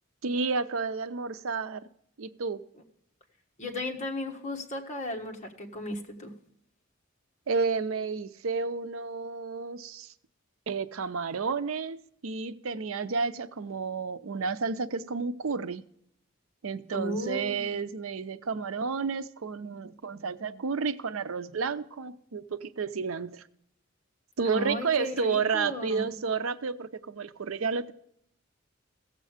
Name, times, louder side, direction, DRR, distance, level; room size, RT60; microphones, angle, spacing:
voice 1, 0.2-1.9 2.2-2.6 7.5-10.1 10.7-15.8 16.6-23.4 24.4-27.9, right 5 dB, 90° right, 0.6 m, -31 dB
voice 2, 3.6-6.3 16.9-17.8 24.4-26.1, left 1 dB, 35° left, 1.4 m, -35 dB
16.0 x 7.5 x 4.9 m
head